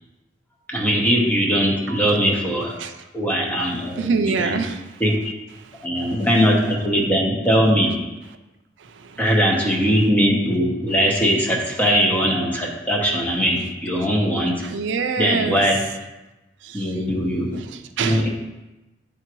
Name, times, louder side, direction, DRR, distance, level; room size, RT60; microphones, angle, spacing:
voice 1, 0.7-2.7 3.1-4.6 5.0-5.1 5.8-7.9 9.2-14.5 15.2-15.8 16.7-17.7 18.0-18.3, equal, 10° left, -1 dB, 0.9 m, -20 dB
voice 2, 3.8-4.8 5.6-6.3 8.8-9.3 14.6-15.6 16.6-17.0 17.5-18.3, right 5 dB, 75° right, 7 dB, 0.4 m, -27 dB
10.0 x 3.6 x 3.0 m, 1.1 s
head